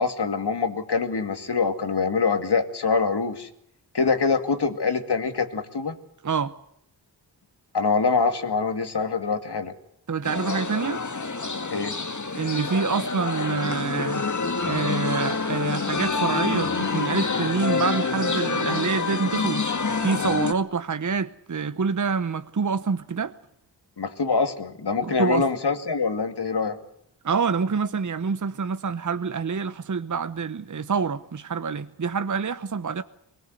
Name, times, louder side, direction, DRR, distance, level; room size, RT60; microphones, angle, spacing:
voice 1, 0.0-3.5 3.9-5.9 7.7-9.7 11.7-11.9 24.0-26.8, left 4 dB, 65° left, 2.4 m, -24 dB
voice 2, 6.2-6.5 10.1-11.0 12.3-14.3 14.6-19.7 20.0-23.3 25.0-25.4 27.2-33.0, right 5 dB, 45° right, 0.9 m, -26 dB
sound 1, 10.2-20.5, left 4 dB, 45° left, 1.9 m, -27 dB
23.5 x 18.0 x 8.0 m
wide cardioid pair, 60°, 43 cm